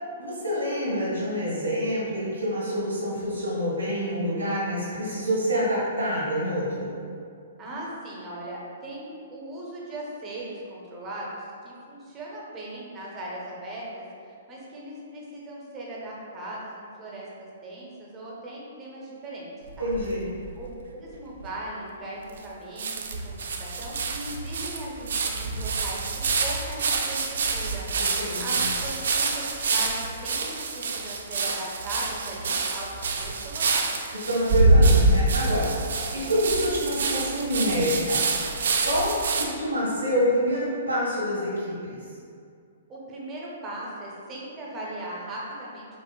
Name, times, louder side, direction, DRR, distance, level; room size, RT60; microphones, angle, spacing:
voice 1, 0.2-6.9 19.8-20.3 27.9-28.7 34.1-38.2 38.8-42.0, equal, 85° right, -6 dB, 1.2 m, -27 dB
voice 2, 7.6-19.9 20.6-20.7 20.9-27.9 28.4-29.4 29.7-33.9 36.1-36.5 42.9-45.9, right 1 dB, 25° right, -5 dB, 0.7 m, -38 dB
sound 1, 19.7-20.6 21.1-21.2 21.4-21.5 22.4-22.5 22.8-39.4, right 3 dB, 65° right, 0.3 m, -26 dB
5.0 x 2.0 x 2.3 m, 2.4 s
figure-of-eight pair, 120°, 0 cm